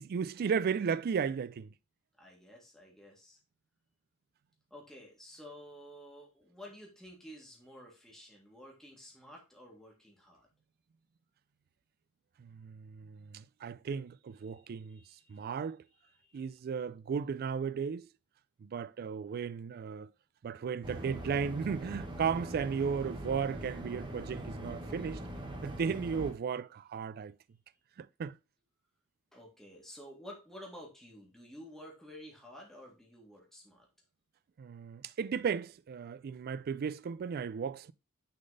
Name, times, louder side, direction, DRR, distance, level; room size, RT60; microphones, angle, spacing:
voice 1, 0.0-1.7 12.4-15.0 15.3-15.8 16.3-18.1 18.6-20.1 20.4-25.3 25.6-27.3 28.0-28.3 34.6-37.9, right 6 dB, 45° right, 0.3 m, -35 dB
voice 2, 2.2-3.4 4.7-10.5 14.7-15.4 16.0-16.4 29.3-33.9, equal, ahead, 1.7 m, -52 dB
sound 1, 20.8-26.3, right 1 dB, 20° right, 1.1 m, -42 dB
6.5 x 4.0 x 3.8 m
head